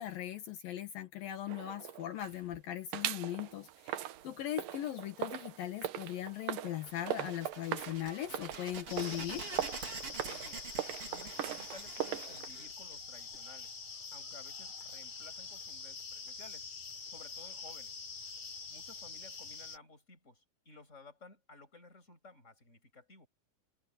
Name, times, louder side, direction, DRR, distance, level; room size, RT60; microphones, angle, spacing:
voice 1, 0.0-9.5, left 12 dB, 75° left, 3.2 m, -39 dB
sound 1, 1.5-2.6 2.9-12.5, right 12 dB, 70° right, 2.6 m, -40 dB
sound 2, 6.9-13.4, right 5 dB, 40° right, 3.7 m, -47 dB
sound 3, 8.9-19.8, left 5 dB, 50° left, 5.0 m, -46 dB
voice 2, 10.3-10.7 11.1-13.8 14.1-16.7 17.1-18.0 18.7-23.3, left 3 dB, 20° left, 6.4 m, -56 dB
omnidirectional pair, 4.2 m